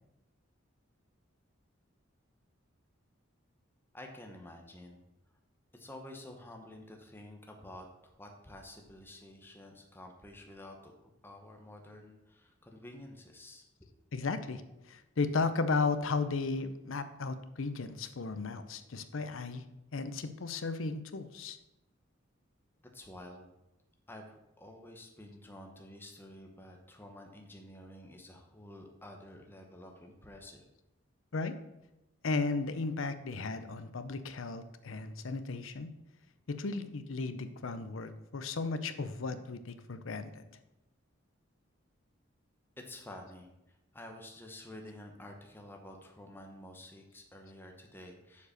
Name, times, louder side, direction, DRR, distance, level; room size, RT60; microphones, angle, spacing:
voice 1, 3.9-5.0 5.7-10.9 11.2-13.9 22.9-23.5 24.1-30.6 42.8-48.5, left 1 dB, 10° left, 2 dB, 0.9 m, -50 dB
voice 2, 14.1-14.6 14.9-19.6 19.9-21.6 31.3-31.6 32.2-35.9 36.5-40.4, left 4 dB, 75° left, 11 dB, 0.6 m, -35 dB
7.0 x 4.8 x 6.5 m, 0.92 s
head